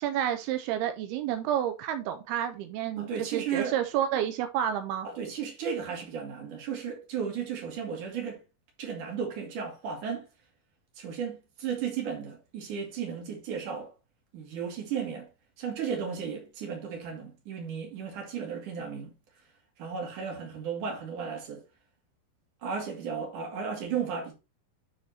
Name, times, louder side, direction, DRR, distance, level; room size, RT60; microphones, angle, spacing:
voice 1, 0.0-5.1, right 10 dB, 85° right, 2.7 m, -30 dB
voice 2, 3.0-3.8 5.0-8.4 8.8-10.3 11.0-13.9 14.3-15.3 15.6-19.1 19.8-21.6 22.6-24.3, right 7 dB, 55° right, 3.8 m, -34 dB
10.0 x 4.3 x 4.3 m
omnidirectional pair, 4.4 m